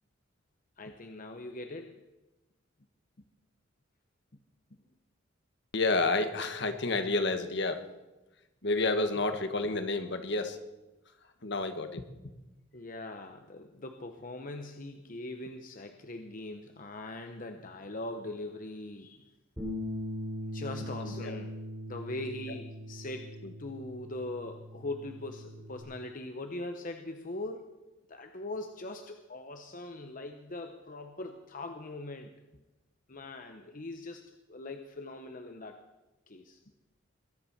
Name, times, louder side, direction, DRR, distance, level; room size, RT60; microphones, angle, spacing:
voice 1, 0.8-2.0 12.7-19.2 20.5-21.6 21.8-27.8 28.1-32.3 33.1-35.9 36.3-36.6, left 2 dB, 45° left, 6 dB, 0.9 m, -41 dB
voice 2, 5.7-7.8 8.6-10.6 11.4-12.1 21.0-21.4, left 3 dB, 65° left, 8 dB, 1.6 m, -30 dB
Bass guitar, 19.6-25.8, left 1 dB, 15° right, 4.8 m, -40 dB
21.5 x 10.0 x 5.9 m, 1.0 s
head